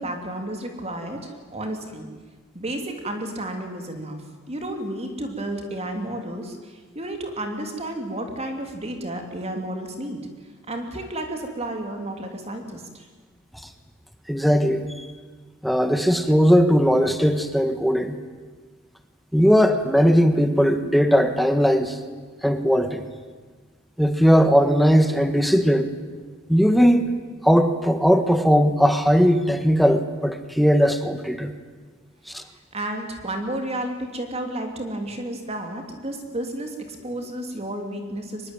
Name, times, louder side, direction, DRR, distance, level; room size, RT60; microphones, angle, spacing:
voice 1, 0.0-2.1 2.5-4.2 4.5-10.2 10.7-13.1 32.7-38.5, right 1 dB, 30° right, 4 dB, 3.0 m, -32 dB
voice 2, 14.3-15.1 15.6-18.2 19.3-22.0 22.4-23.0 24.0-25.9 26.5-27.0 27.4-31.5 32.3-32.4, equal, ahead, 8 dB, 1.6 m, -18 dB
24.0 x 21.5 x 9.2 m, 1.4 s
head